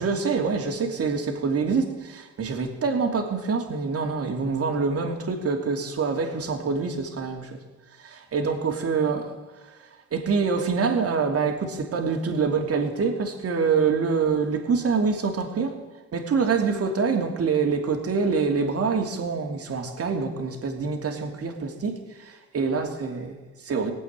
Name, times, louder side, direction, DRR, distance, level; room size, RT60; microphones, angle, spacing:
voice 1, 0.0-7.6 8.0-9.4 9.6-15.8 16.1-23.9, right 5 dB, 50° right, 4 dB, 2.9 m, -26 dB
19.0 x 8.5 x 8.8 m, 1.2 s
cardioid pair, 90°, 30 cm